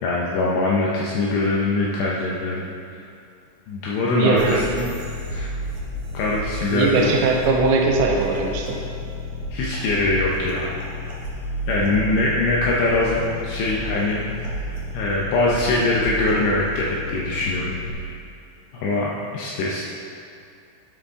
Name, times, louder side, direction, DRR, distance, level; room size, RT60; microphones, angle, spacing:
voice 1, 0.0-2.7 3.7-4.6 5.3-5.5 6.1-7.1 9.5-10.8 11.7-14.3 14.9-18.1 18.7-19.9, left 2 dB, 80° left, -4 dB, 2.5 m, -23 dB
voice 2, 4.1-4.9 6.7-8.8, right 3 dB, 85° right, 1 dB, 3.4 m, -20 dB
sound 1, 4.4-17.9, left 1 dB, 60° right, 3.3 m, -31 dB
12.5 x 6.5 x 3.7 m, 2.5 s
omnidirectional pair, 5.8 m